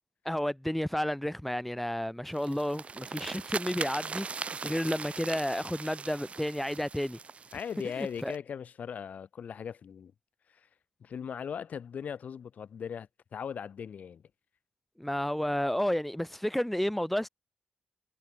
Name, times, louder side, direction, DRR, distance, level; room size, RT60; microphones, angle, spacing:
voice 1, 0.3-4.3 4.6-7.2 8.0-8.3 15.0-17.3, equal, 5° left, 0.4 m, -31 dB
sound 1, 2.3-8.4, right 5 dB, 45° right, 1.5 m, -40 dB
voice 2, 7.5-10.1 11.0-14.2, left 7 dB, 65° left, 0.8 m, -39 dB
supercardioid pair, 60°, 3 cm